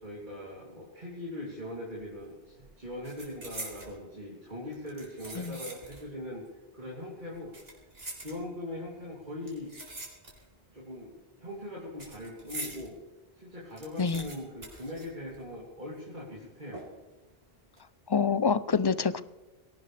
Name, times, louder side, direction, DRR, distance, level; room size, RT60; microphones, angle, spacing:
voice 1, 0.0-6.4 6.7-7.5 8.2-9.7 10.7-13.0 13.3-16.8, left 1 dB, 50° right, -6 dB, 3.4 m, -41 dB
sound 1, 2.0-2.3 2.6-4.0 4.7-6.1 6.4-6.5 7.3-8.8 9.4-10.6 10.9-12.9 13.3-13.4 13.6-15.7 15.9-16.0 16.7-17.2 17.6-17.8, right 2 dB, 75° right, 4.6 m, -44 dB
voice 2, 18.1-19.2, left 5 dB, 30° left, 14 dB, 0.5 m, -26 dB
21.5 x 18.0 x 3.4 m, 1.2 s
omnidirectional pair, 1.0 m